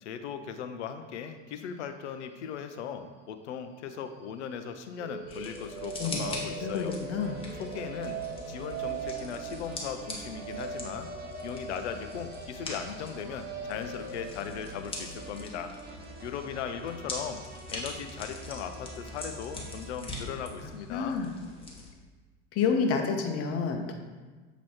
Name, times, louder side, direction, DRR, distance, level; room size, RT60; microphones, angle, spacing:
voice 1, 0.0-7.0 7.6-8.2 8.5-11.1 11.4-15.7 16.2-17.4 17.7-21.2, left 7 dB, 75° left, 8 dB, 0.7 m, -38 dB
sound 1, 4.9-18.9, right 4 dB, 45° right, 1.4 m, -42 dB
sound 2, 5.3-21.9, left 2 dB, 15° left, 1.4 m, -43 dB
voice 2, 6.6-7.4 20.6-21.3 22.5-23.9, left 5 dB, 40° left, 4 dB, 1.0 m, -29 dB
sound 3, 7.2-19.9, right 1 dB, 25° right, 1.3 m, -47 dB
7.6 x 3.1 x 4.3 m, 1.3 s
hypercardioid pair, 85°, 35 cm